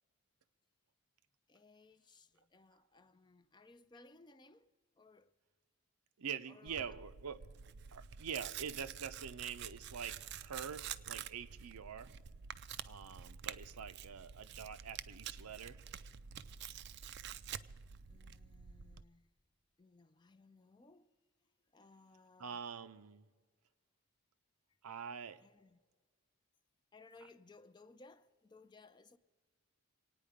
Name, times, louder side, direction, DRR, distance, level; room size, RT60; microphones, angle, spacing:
voice 1, 1.5-5.3 6.5-7.0 16.6-16.7 17.2-17.3 18.1-19.3 19.8-21.1 21.4-22.6 25.4-25.8 26.9-29.2, left 3 dB, 20° left, 0.4 m, -62 dB
voice 2, 6.2-7.4 7.9-12.1 12.8-15.8 22.4-23.3 24.8-25.4, right 7 dB, 85° right, 0.6 m, -45 dB
Tearing, 6.7-19.0, right 9 dB, 50° right, 0.4 m, -48 dB
25.0 x 9.3 x 5.0 m
head